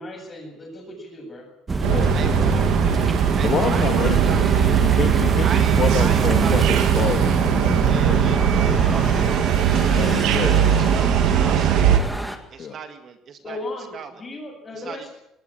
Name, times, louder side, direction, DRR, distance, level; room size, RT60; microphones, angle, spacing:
voice 1, 0.0-2.9 13.4-15.1, left 1 dB, 20° left, 2 dB, 7.9 m, -37 dB
sound 1, 1.7-9.4, right 3 dB, 20° right, 1.3 m, -24 dB
sound 2, 1.8-12.0, right 10 dB, 75° right, 2.3 m, -20 dB
sound 3, 1.9-12.4, equal, ahead, 2.0 m, -35 dB
voice 2, 2.1-2.6 3.4-4.6 5.4-6.8 7.8-9.6 9.9-10.4 10.7-12.1 12.5-13.6 13.9-14.1 14.8-15.1, right 7 dB, 40° right, 7 dB, 1.9 m, -36 dB
voice 3, 3.4-8.4 9.9-10.7 12.6-12.8, left 7 dB, 40° left, 5 dB, 1.7 m, -28 dB
19.5 x 19.0 x 8.9 m, 0.83 s
cardioid pair, 160°, 0 cm